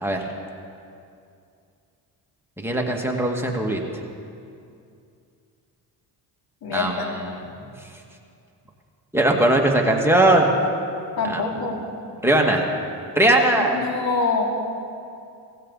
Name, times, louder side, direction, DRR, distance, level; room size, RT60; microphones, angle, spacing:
voice 1, 2.6-3.8 6.7-7.4 7.8-7.9 9.1-10.5 11.3-11.4 12.2-12.7 13.2-13.8, right 1 dB, 5° right, 0 dB, 2.1 m, -20 dB
voice 2, 6.6-7.0 11.2-11.8 13.7-14.4, left 4 dB, 60° left, 0 dB, 2.9 m, -25 dB
19.0 x 15.5 x 4.1 m, 2.5 s
supercardioid pair, 80°, 42 cm